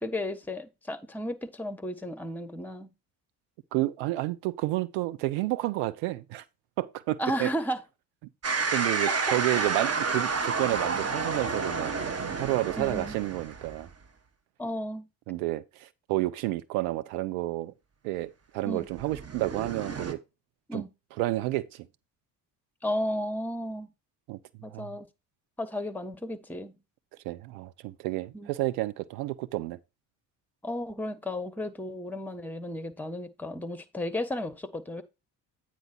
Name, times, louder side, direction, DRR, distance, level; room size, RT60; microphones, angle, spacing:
voice 1, 0.0-2.9 7.2-7.8 9.0-9.7 12.8-13.2 14.6-15.1 18.7-18.9 20.7-20.9 22.8-23.9 24.6-25.1 25.6-26.8 28.3-28.5 30.6-35.0, left 1 dB, 5° left, 1.2 m, -34 dB
voice 2, 3.7-6.4 6.8-7.5 8.7-12.1 12.4-13.9 15.3-17.7 18.0-20.2 20.7-20.8 21.2-21.9 24.3-24.4 24.7-25.0 27.2-29.8, right 17 dB, 75° right, 0.9 m, -30 dB
sound 1, 8.4-13.9 19.0-20.1, right 4 dB, 30° right, 1.4 m, -30 dB
9.3 x 4.4 x 4.4 m
hypercardioid pair, 55°, 48 cm